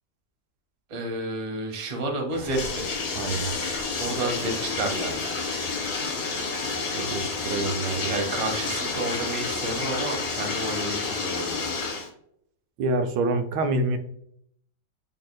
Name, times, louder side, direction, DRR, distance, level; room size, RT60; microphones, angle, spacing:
voice 1, 0.9-2.9 4.0-5.2 8.1-11.7, right 2 dB, 50° right, 2 dB, 0.4 m, -30 dB
Bathtub (filling or washing), 2.3-12.1, left 4 dB, 80° left, 1.8 m, -30 dB
voice 2, 3.1-3.5 6.9-8.1 12.8-14.0, right 2 dB, 85° right, 8 dB, 1.3 m, -27 dB
5.6 x 2.8 x 2.2 m, 0.70 s
omnidirectional pair, 2.0 m